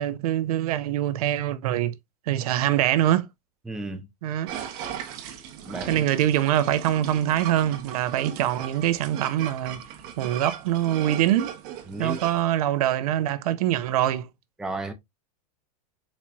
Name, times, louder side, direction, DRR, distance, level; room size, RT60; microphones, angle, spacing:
voice 1, 0.0-1.9 2.3-3.3 4.2-4.5 5.9-9.8 10.2-11.5 12.0-14.3, right 12 dB, 75° right, 0.6 m, -24 dB
voice 2, 3.7-4.1 5.7-6.0 11.9-12.2 14.6-14.9, right 2 dB, 5° right, 0.5 m, -33 dB
sound 1, 4.5-12.4, right 9 dB, 50° right, 0.9 m, -38 dB
4.1 x 3.0 x 2.2 m
supercardioid pair, 140°, 19 cm